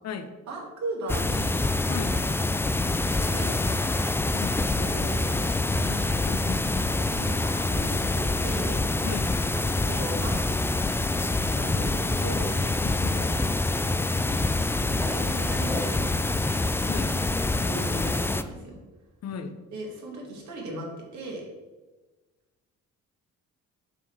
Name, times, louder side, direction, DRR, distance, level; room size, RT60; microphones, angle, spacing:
voice 1, 0.5-1.6 2.8-3.6 4.7-6.1 7.1-8.7 9.5-10.3 11.4-12.5 13.1-13.3 14.1-14.5 14.8-16.4 17.6-18.8 19.7-21.4, right 2 dB, 70° right, -1 dB, 2.5 m, -37 dB
sound 1, 1.1-18.4, left 2 dB, 10° left, 0.3 m, -26 dB
voice 2, 1.9-2.2 4.3-4.6 6.3-6.7 9.0-9.3 12.8-13.2 16.9-17.2 19.2-19.5, left 6 dB, 60° left, 9 dB, 0.8 m, -35 dB
7.5 x 3.8 x 6.3 m, 1.2 s
cardioid pair, 90°, 30 cm